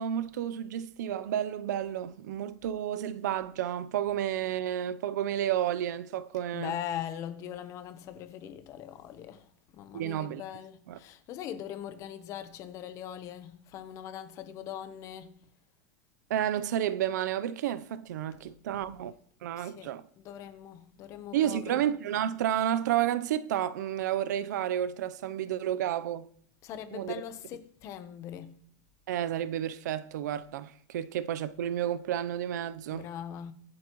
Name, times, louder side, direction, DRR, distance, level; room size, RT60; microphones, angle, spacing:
voice 1, 0.0-6.7 9.9-10.4 10.9-11.0 16.3-19.1 19.4-20.1 21.3-26.3 26.9-27.1 29.1-33.1, right 11 dB, 80° right, 0.7 m, -31 dB
voice 2, 6.3-15.3 18.4-18.9 19.6-19.9 20.2-21.9 26.6-28.6 32.9-33.5, left 10 dB, 35° left, 1.0 m, -41 dB
23.5 x 7.9 x 3.1 m
supercardioid pair, 160°, 9 cm